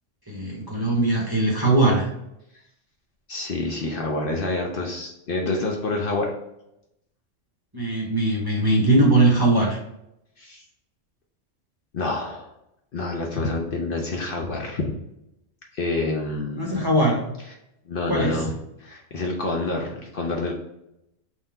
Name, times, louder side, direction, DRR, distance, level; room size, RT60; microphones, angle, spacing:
voice 1, 0.3-2.1 7.7-9.8 16.5-17.2 18.1-18.5, right 2 dB, 25° right, -3 dB, 0.7 m, -20 dB
voice 2, 3.3-6.3 10.4-10.6 11.9-12.5 12.9-14.9 15.7-16.8 17.9-18.5 18.8-20.5, left 2 dB, 55° left, 0 dB, 0.7 m, -27 dB
3.8 x 2.6 x 4.4 m, 0.83 s
omnidirectional pair, 1.3 m